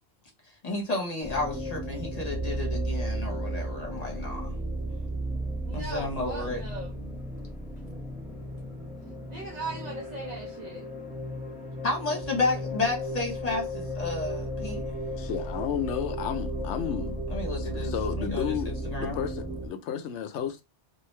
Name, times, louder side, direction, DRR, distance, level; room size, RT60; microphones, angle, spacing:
voice 1, 0.6-4.5 5.7-6.6 11.8-14.8 17.3-19.2, left 3 dB, 35° left, 1.1 m, -32 dB
sound 1, 1.2-19.7, right 1 dB, ahead, 0.8 m, -34 dB
voice 2, 5.7-6.9 9.3-10.9, right 2 dB, 45° right, 0.8 m, -38 dB
voice 3, 15.2-17.2 17.6-18.7 19.0-20.6, left 8 dB, 85° left, 0.9 m, -32 dB
3.0 x 2.6 x 3.1 m
omnidirectional pair, 1.2 m